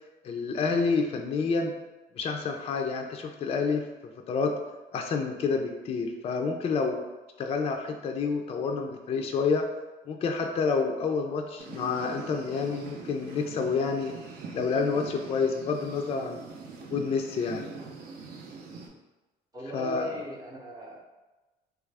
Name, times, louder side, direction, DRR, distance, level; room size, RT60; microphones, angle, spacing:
voice 1, 0.2-1.7 2.1-3.9 4.3-4.5 4.9-7.0 7.4-9.7 10.1-14.1 14.5-16.4 16.9-17.7 19.7-20.2, left 4 dB, 35° left, 4 dB, 0.3 m, -28 dB
sound 1, 11.6-18.9, right 4 dB, 70° right, 0.6 m, -43 dB
voice 2, 19.5-21.0, left 1 dB, 20° right, -2 dB, 0.6 m, -39 dB
3.2 x 2.4 x 3.3 m, 1.1 s
cardioid pair, 110°, 17 cm